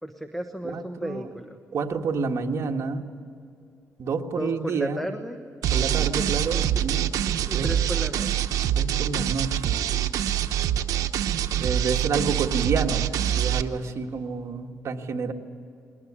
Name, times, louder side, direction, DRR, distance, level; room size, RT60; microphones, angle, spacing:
voice 1, 0.0-1.6 4.4-5.4 6.5-6.8 7.5-8.3, right 1 dB, 5° left, 7 dB, 1.2 m, -33 dB
voice 2, 0.6-1.3 1.7-3.0 4.0-5.1 5.7-7.1 7.5-7.8 8.7-9.8 11.6-15.3, right 5 dB, 55° right, 2 dB, 1.7 m, -29 dB
sound 1, 5.6-13.6, right 10 dB, 85° right, 0.9 m, -25 dB
21.5 x 19.0 x 9.8 m, 2.4 s
cardioid pair, 120°, 6 cm